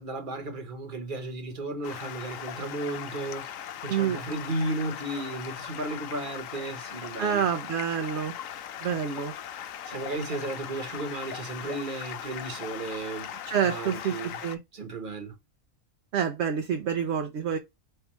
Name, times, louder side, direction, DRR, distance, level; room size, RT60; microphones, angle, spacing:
voice 1, 0.0-3.6 3.8-7.5 9.9-13.3 13.6-14.4 14.7-15.3, right 2 dB, 40° right, 1.2 m, -34 dB
Stream, 1.8-14.6, left 10 dB, 75° left, 1.0 m, -39 dB
voice 2, 3.9-4.2 7.2-8.3 8.8-9.3 13.5-14.6 16.1-17.6, right 8 dB, 60° right, 0.9 m, -27 dB
4.8 x 3.3 x 3.0 m
omnidirectional pair, 1.4 m